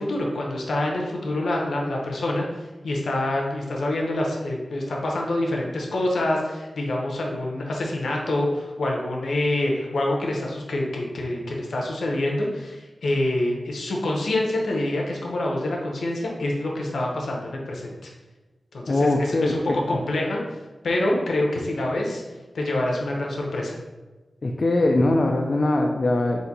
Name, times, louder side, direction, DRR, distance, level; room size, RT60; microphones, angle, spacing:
voice 1, 0.0-18.1 18.7-20.4 20.8-22.2 22.5-23.8, left 1 dB, 85° left, -1 dB, 0.7 m, -26 dB
voice 2, 18.9-19.8 24.4-26.4, left 2 dB, 50° left, 1 dB, 0.4 m, -21 dB
4.2 x 2.6 x 4.0 m, 1.2 s
wide cardioid pair, 90°, 0 cm